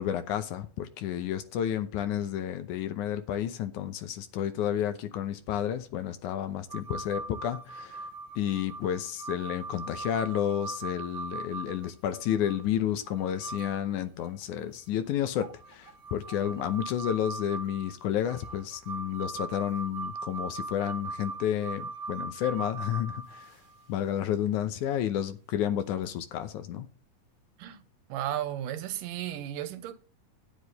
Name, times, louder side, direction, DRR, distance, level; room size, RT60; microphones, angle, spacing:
voice 1, 0.0-8.1 8.4-23.5 23.9-26.9, left 10 dB, 75° left, 2.2 m, -31 dB
sound 1, 6.7-12.6 13.1-13.9 14.2-14.3 15.4-23.8 26.0-26.1, right 3 dB, 45° right, 2.6 m, -40 dB
voice 2, 28.1-29.9, right 11 dB, 85° right, 2.6 m, -34 dB
9.9 x 9.7 x 4.0 m
omnidirectional pair, 3.8 m